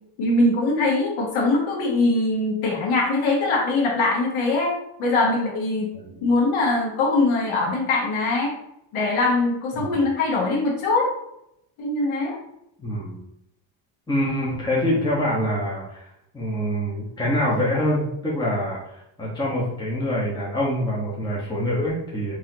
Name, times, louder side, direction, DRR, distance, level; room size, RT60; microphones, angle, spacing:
voice 1, 0.2-5.9 6.2-8.5 8.9-11.1 11.8-12.4, left 2 dB, 75° left, -1 dB, 1.2 m, -22 dB
voice 2, 12.8-13.2 14.1-16.1 16.3-22.4, equal, 10° left, -6 dB, 1.2 m, -25 dB
3.8 x 3.1 x 2.8 m, 0.79 s
supercardioid pair, 90°, 47 cm